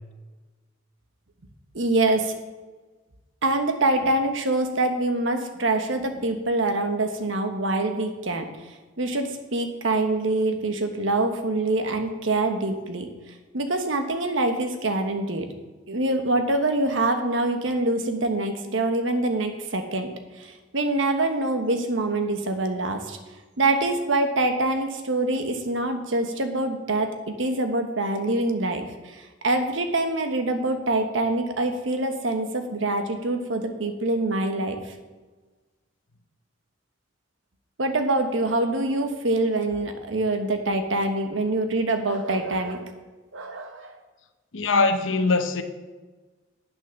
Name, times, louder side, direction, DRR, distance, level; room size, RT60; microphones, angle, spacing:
voice 1, 1.7-2.3 3.4-8.5 9.0-13.1 13.5-15.5 15.9-20.1 20.4-23.2 23.6-28.9 29.1-34.9 37.8-42.9 43.3-44.0, right 2 dB, 85° right, 1.2 m, -25 dB
voice 2, 44.5-45.6, left 3 dB, 80° left, 0.8 m, -22 dB
8.6 x 6.8 x 6.5 m
head